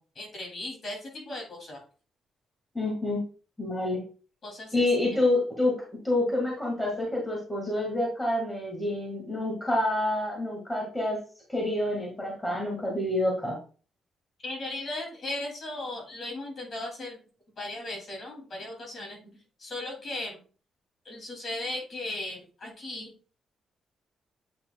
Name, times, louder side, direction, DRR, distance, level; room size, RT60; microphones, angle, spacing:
voice 1, 0.0-1.8 4.4-4.7 14.4-17.2 17.6-19.2 19.6-20.4 21.1-23.1, left 1 dB, 35° left, 1 dB, 2.5 m, -37 dB
voice 2, 2.8-3.2 3.6-4.0 4.7-11.2 11.5-13.6, left 1 dB, 10° left, -2 dB, 1.7 m, -28 dB
8.5 x 5.8 x 2.2 m, 0.38 s
cardioid pair, 155°, 0 cm